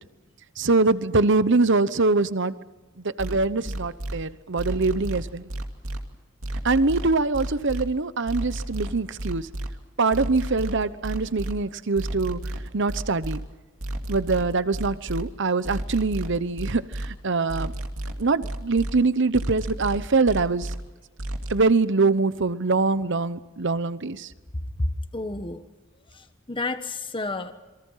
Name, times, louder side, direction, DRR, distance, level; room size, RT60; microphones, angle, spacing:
voice 1, 0.6-2.5 3.2-5.4 6.6-9.4 10.0-12.4 12.7-13.4 14.1-17.7 18.2-20.7 21.5-24.3, right 3 dB, 60° right, 15 dB, 1.0 m, -23 dB
sound 1, 3.2-4.1 4.6-6.0 6.4-7.8 8.3-9.7 10.1-11.5 12.0-13.4 13.8-15.2 15.6-17.1 17.5-18.9 19.3-20.8 21.2-21.5, right 1 dB, 80° right, 2.5 m, -31 dB
voice 2, 25.1-25.6 26.1-27.5, left 3 dB, 25° left, 8 dB, 1.2 m, -31 dB
28.0 x 23.5 x 5.7 m, 1.2 s
head